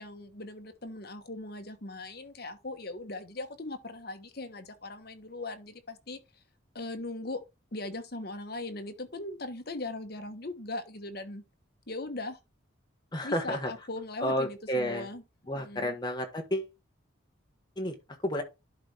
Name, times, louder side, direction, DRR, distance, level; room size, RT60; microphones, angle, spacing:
voice 1, 0.0-6.2 6.7-7.4 7.7-11.4 11.9-12.4 13.2-15.2 15.5-15.9, left 2 dB, 50° left, 1.3 m, -39 dB
voice 2, 13.1-13.7 14.2-15.1 15.5-16.7 17.8-17.9 18.2-18.4, equal, 20° left, 1.4 m, -31 dB
11.0 x 4.2 x 3.4 m
head